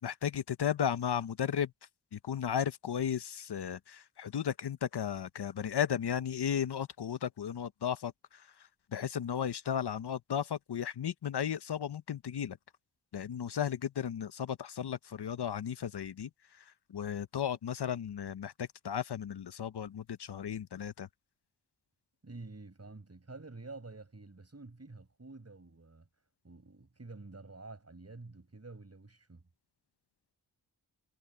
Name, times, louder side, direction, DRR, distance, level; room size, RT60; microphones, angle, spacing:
voice 1, 0.0-1.7 2.1-12.6 13.1-21.1, left 8 dB, 70° left, 0.7 m, -35 dB
voice 2, 22.2-26.1 26.4-29.4, right 3 dB, 35° right, 7.7 m, -49 dB
wide cardioid pair, 100°, 41 cm